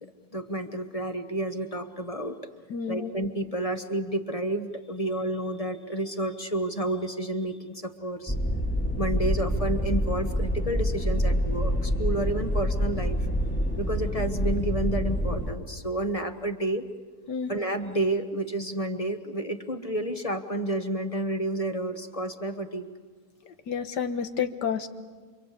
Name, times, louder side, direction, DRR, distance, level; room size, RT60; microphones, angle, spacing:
voice 1, 0.0-2.4 2.9-8.3 9.0-13.2 13.8-16.8 17.5-22.9, right 1 dB, 25° left, 7 dB, 1.2 m, -30 dB
voice 2, 2.7-3.1 17.3-17.5 23.5-24.9, left 7 dB, 85° left, 9 dB, 1.8 m, -30 dB
sound 1, 8.3-15.5, equal, 5° left, 1.6 m, -27 dB
28.5 x 25.0 x 8.3 m, 1.5 s
omnidirectional pair, 1.8 m